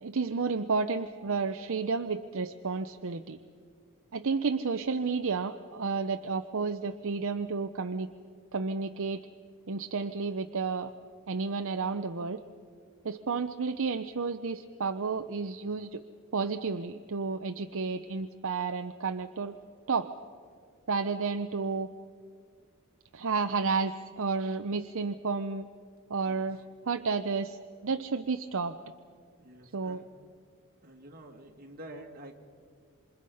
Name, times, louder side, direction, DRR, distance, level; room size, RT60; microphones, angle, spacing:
voice 1, 0.0-3.4 4.1-8.1 8.5-9.2 9.7-10.9 11.3-12.4 13.0-16.0 16.3-19.6 19.9-20.1 20.9-21.9 23.1-25.7 26.1-28.8 29.7-30.0, right 4 dB, 60° right, 8 dB, 0.7 m, -31 dB
voice 2, 29.4-30.0 30.8-32.3, right 1 dB, 45° right, 2 dB, 2.5 m, -48 dB
28.0 x 26.0 x 5.6 m, 2.1 s
head